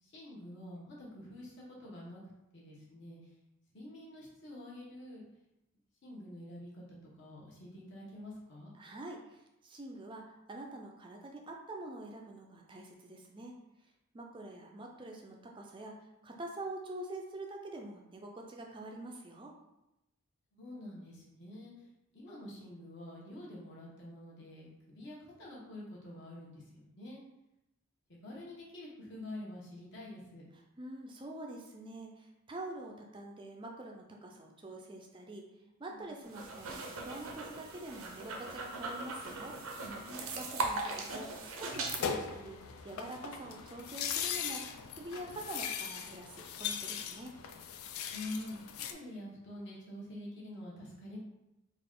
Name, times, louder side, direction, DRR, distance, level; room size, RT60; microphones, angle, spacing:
voice 1, 0.0-2.2 2.5-3.2 3.7-5.2 6.0-8.7 20.5-21.7 22.1-27.2 28.1-30.4 35.9-36.2 39.8-40.3 48.1-51.2, left 1 dB, 55° left, -5 dB, 1.2 m, -47 dB
voice 2, 8.7-13.5 14.1-19.5 30.8-35.5 35.8-39.6 40.3-42.6 42.8-47.4, right 2 dB, 20° right, 1 dB, 0.4 m, -46 dB
sound 1, 36.2-42.0, right 3 dB, 75° right, 0.6 m, -39 dB
sound 2, 41.7-48.9, left 7 dB, 80° left, 0.4 m, -39 dB
3.9 x 2.5 x 3.7 m, 0.91 s
head